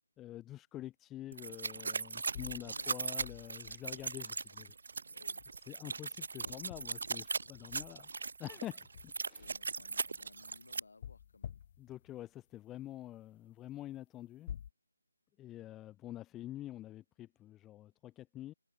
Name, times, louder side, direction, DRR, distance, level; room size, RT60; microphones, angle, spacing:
voice 1, 0.2-4.7 5.7-8.1 8.4-9.5 11.8-14.5 15.4-18.5, left 13 dB, 10° left, 2.8 m, -47 dB
sound 1, 1.3-10.8, right 4 dB, 55° right, 0.4 m, -39 dB
sound 2, 2.2-4.4 5.4-5.7 6.0-8.4 8.8-10.4 11.0-12.1 14.5-14.7, left 9 dB, 30° left, 1.8 m, -50 dB
voice 2, 2.6-2.9 5.0-5.4 6.4-6.7 9.3-11.6, left 3 dB, 65° left, 6.8 m, -60 dB
figure-of-eight pair, 160°, 0 cm